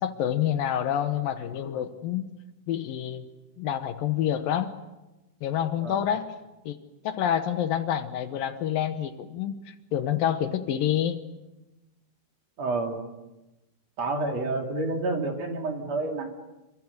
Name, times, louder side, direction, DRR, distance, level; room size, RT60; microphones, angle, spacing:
voice 1, 0.0-2.3 2.7-3.3 3.6-4.7 5.4-6.3 6.7-6.8 7.0-11.2, left 10 dB, 70° left, 10 dB, 2.3 m, -27 dB
voice 2, 12.6-13.0 14.0-16.3, right 2 dB, 45° right, 3 dB, 3.1 m, -29 dB
28.0 x 25.0 x 6.6 m, 1.0 s
omnidirectional pair, 5.2 m